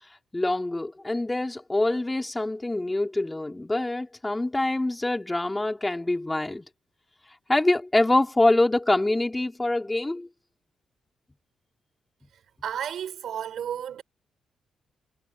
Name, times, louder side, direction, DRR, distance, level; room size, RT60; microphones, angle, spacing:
voice 1, 0.3-6.7 7.5-10.3, left 2 dB, 20° left, 4.0 m, -25 dB
voice 2, 12.6-14.0, right 9 dB, 70° right, 7.3 m, -32 dB
supercardioid pair, 50°, 0 cm